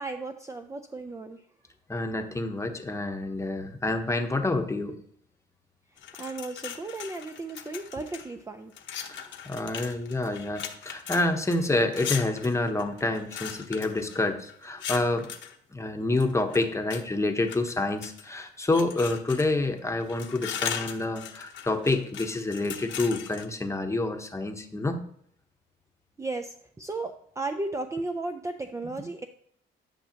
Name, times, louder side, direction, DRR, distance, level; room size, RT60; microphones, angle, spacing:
voice 1, 0.0-1.4 6.2-8.7 26.2-29.3, right 2 dB, 15° right, 5 dB, 0.5 m, -35 dB
voice 2, 1.9-5.0 9.1-15.3 15.7-25.0, left 2 dB, 15° left, 6 dB, 0.9 m, -28 dB
sound 1, 6.0-8.3 8.7-15.5 16.2-17.0 17.5-18.3 18.7-19.7 20.0-23.5, left 8 dB, 70° left, 0.9 m, -38 dB
10.5 x 5.6 x 2.9 m, 0.64 s
cardioid pair, 90°, 20 cm